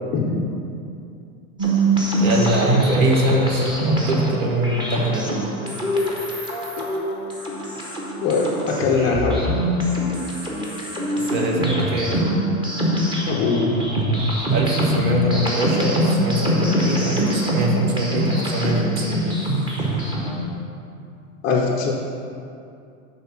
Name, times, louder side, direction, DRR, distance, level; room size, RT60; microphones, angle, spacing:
sound 1, 1.6-20.5, right 1 dB, 10° right, 0.8 m, -23 dB
voice 1, 2.1-5.3 11.2-12.2 14.5-19.3, right 1 dB, 80° right, 0 dB, 1.4 m, -23 dB
voice 2, 7.8-9.5 13.3-13.8 21.4-21.9, left 4 dB, 25° left, -1 dB, 0.4 m, -22 dB
7.6 x 3.9 x 5.8 m, 2.5 s
supercardioid pair, 150°, 41 cm